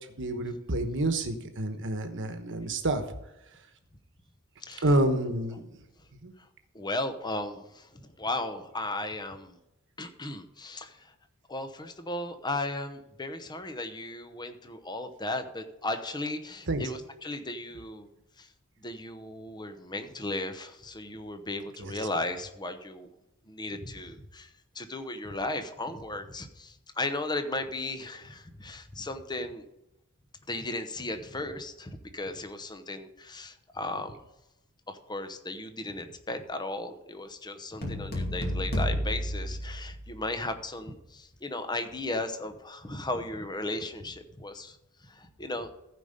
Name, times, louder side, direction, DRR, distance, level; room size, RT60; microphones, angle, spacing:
voice 1, 0.2-3.0 4.8-5.7 6.2-6.3 16.7-16.8 21.8-21.9, right 1 dB, 55° right, 7 dB, 1.2 m, -28 dB
voice 2, 6.7-9.6 10.0-11.1 11.5-18.1 18.4-18.5 18.8-23.1 23.5-24.5 24.7-29.6 30.5-34.2 34.9-45.7, left 2 dB, 20° left, 8 dB, 0.9 m, -36 dB
sound 1, 37.8-40.4, equal, 45° left, 2.5 m, -31 dB
15.0 x 5.1 x 5.2 m, 0.90 s
head